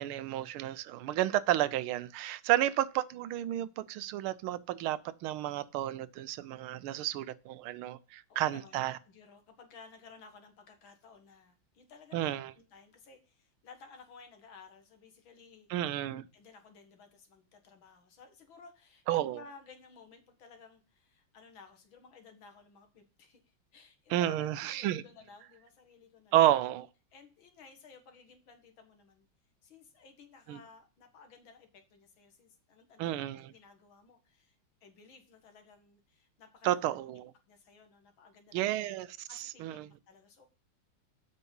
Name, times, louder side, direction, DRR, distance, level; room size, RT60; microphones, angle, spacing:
voice 1, 0.0-9.0 12.1-12.5 15.7-16.3 19.1-19.4 24.1-25.0 26.3-26.9 30.5-30.6 33.0-33.5 36.6-37.3 38.5-39.9, right 13 dB, 85° right, 1.5 m, -31 dB
voice 2, 8.3-15.7 16.3-23.4 23.7-26.4 27.1-29.3 29.6-38.7 39.3-40.5, left 5 dB, 70° left, 2.2 m, -56 dB
8.2 x 5.3 x 5.4 m
omnidirectional pair, 2.3 m